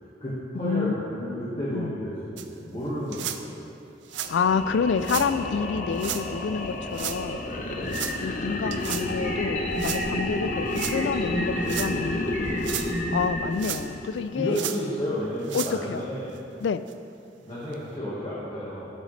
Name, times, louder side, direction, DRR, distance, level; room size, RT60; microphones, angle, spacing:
voice 1, 0.0-3.3 7.5-8.2 12.5-12.8 14.3-16.3 17.4-18.9, equal, 30° left, -8 dB, 1.5 m, -32 dB
voice 2, 0.5-1.9 4.3-7.4 8.2-12.3 13.1-14.6 15.5-16.0 16.6-16.8, left 6 dB, 75° left, 13 dB, 0.3 m, -28 dB
sound 1, 2.4-2.5 3.1-3.4 4.0-4.3 5.0-5.3 6.0-6.2 6.9-7.2 7.9-8.2 8.7-9.1 9.8-10.0 10.7-11.0 11.6-11.9 12.5-12.9 13.6-14.1 14.5-14.8 15.4-15.7 16.4-16.5 16.9-17.0 17.7-17.8, right 11 dB, 85° right, 0.5 m, -33 dB
sound 2, 4.1-14.5, left 2 dB, 45° left, 0.7 m, -31 dB
sound 3, 8.6-8.7 9.2-10.2 10.7-11.8 12.3-13.4, right 1 dB, 20° right, 1.9 m, -33 dB
14.5 x 6.4 x 3.3 m, 2.7 s
head